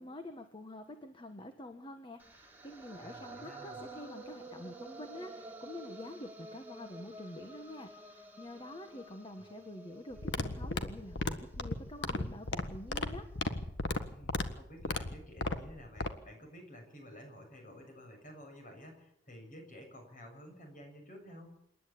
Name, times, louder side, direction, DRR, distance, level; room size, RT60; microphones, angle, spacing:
voice 1, 0.0-13.3, left 1 dB, 25° left, 6 dB, 1.5 m, -47 dB
sound 1, 2.2-12.3, right 2 dB, 10° right, 2.6 m, -50 dB
voice 2, 3.0-3.9 9.4-9.5 14.1-21.6, equal, 45° left, 4 dB, 7.3 m, -52 dB
sound 2, 10.1-16.1, left 2 dB, 70° left, 1.6 m, -36 dB
27.5 x 11.5 x 8.8 m, 0.74 s
head